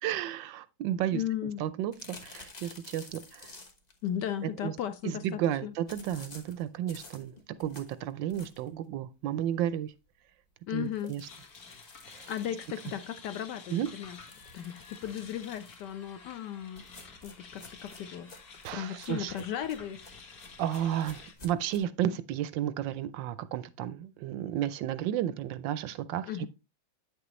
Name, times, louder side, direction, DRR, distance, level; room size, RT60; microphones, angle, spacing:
voice 1, 0.0-1.2 1.6-3.5 4.6-4.7 5.0-7.3 7.6-9.9 10.7-11.2 12.1-12.3 13.7-13.9 18.6-19.3 20.6-26.5, right 11 dB, 75° right, 1.1 m, -32 dB
voice 2, 1.1-1.6 4.0-5.7 10.7-11.1 12.3-14.2 14.5-18.3 18.7-20.1 26.3-26.5, left 10 dB, 75° left, 1.0 m, -36 dB
sound 1, 1.9-4.0 5.9-8.8 9.3-9.4 9.7-9.8 10.1-10.2 10.8-13.3 14.1-15.9 16.8-21.8, left 2 dB, 25° left, 0.9 m, -52 dB
sound 2, 11.2-21.3, left 4 dB, 45° left, 2.0 m, -51 dB
9.0 x 6.8 x 3.0 m
omnidirectional pair, 2.3 m